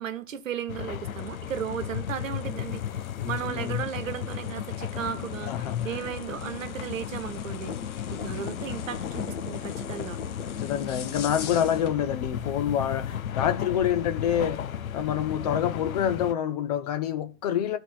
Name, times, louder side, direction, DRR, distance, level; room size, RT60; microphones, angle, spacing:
voice 1, 0.0-2.8 3.3-7.8 8.1-10.2, right 9 dB, 65° right, 1.2 m, -35 dB
sound 1, 0.7-16.3, left 9 dB, 80° left, 0.9 m, -35 dB
sound 2, 1.0-12.0, left 7 dB, 60° left, 1.6 m, -42 dB
voice 2, 3.2-3.8 5.5-6.0 8.2-8.3 10.6-17.8, left 9 dB, 30° left, 0.7 m, -27 dB
11.5 x 4.5 x 7.7 m
hypercardioid pair, 145°, 41 cm